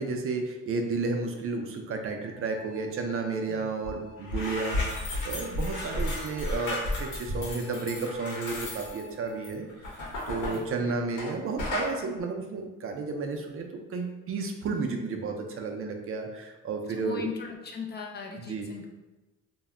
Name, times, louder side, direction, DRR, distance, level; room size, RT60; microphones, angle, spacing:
voice 1, 0.0-9.7 10.3-17.2 18.5-18.7, right 4 dB, 50° right, 3 dB, 0.4 m, -32 dB
sound 1, 2.2-9.4, left 2 dB, 50° left, 1.0 m, -51 dB
sound 2, 3.8-11.3 11.6-11.9, left 1 dB, 90° left, 0.9 m, -33 dB
voice 2, 10.4-11.0 16.9-18.9, left 5 dB, 35° left, 1 dB, 0.4 m, -39 dB
2.1 x 2.0 x 3.5 m, 1.1 s
cardioid pair, 90°, 30 cm